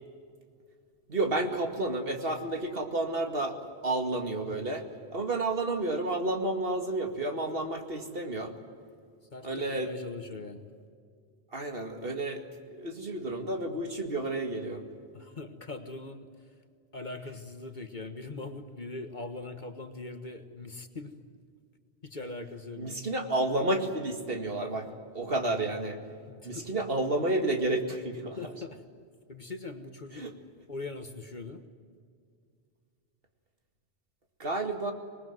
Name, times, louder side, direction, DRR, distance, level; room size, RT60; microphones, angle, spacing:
voice 1, 1.1-3.6 3.8-4.9 5.1-8.5 9.4-9.9 11.5-14.8 22.8-24.9 25.1-26.0 26.4-28.4 30.1-30.3 34.4-34.9, right 2 dB, 65° right, 5 dB, 2.5 m, -31 dB
voice 2, 9.3-10.7 15.1-16.3 16.9-21.1 22.0-23.0 24.7-24.9 26.3-26.7 28.4-28.8 29.3-30.2 30.7-31.6, left 3 dB, 50° left, 7 dB, 1.6 m, -41 dB
26.0 x 20.5 x 9.4 m, 2.2 s
omnidirectional pair, 1.1 m